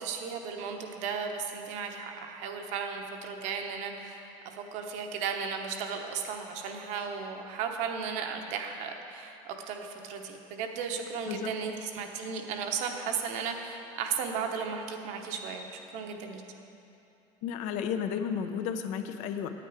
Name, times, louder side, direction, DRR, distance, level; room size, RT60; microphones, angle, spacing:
voice 1, 0.0-15.7 15.9-16.4, right 6 dB, 60° right, 4 dB, 0.9 m, -35 dB
voice 2, 17.4-19.5, left 7 dB, 65° left, 8 dB, 0.6 m, -33 dB
9.1 x 9.0 x 4.9 m, 2.8 s
cardioid pair, 165°, 14 cm